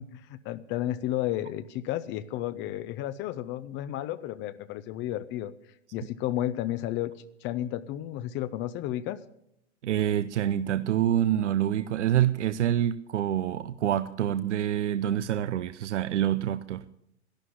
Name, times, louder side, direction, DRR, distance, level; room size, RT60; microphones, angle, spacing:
voice 1, 0.0-7.1 7.4-9.2, left 13 dB, 35° left, 0.7 m, -32 dB
voice 2, 9.8-16.9, right 11 dB, 85° right, 0.7 m, -26 dB
11.5 x 11.5 x 9.5 m
hypercardioid pair, 120°, 35 cm